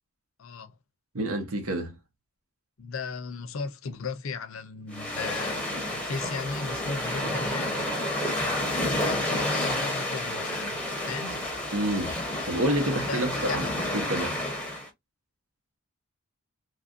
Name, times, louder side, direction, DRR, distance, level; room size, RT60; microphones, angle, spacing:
voice 1, 0.4-0.8 2.8-5.6 5.9-7.9 8.9-10.8 11.1-11.4 13.1-13.7, left 4 dB, 75° left, 0.5 m, -36 dB
voice 2, 1.1-2.0 11.7-14.4, right 1 dB, 85° right, 1.0 m, -29 dB
sound 1, 4.9-14.9, left 1 dB, 5° left, 0.7 m, -30 dB
Wind instrument woodwind instrument, 4.9-8.6 8.9-12.7, right 2 dB, 15° right, 0.3 m, -44 dB
3.1 x 2.5 x 2.4 m
head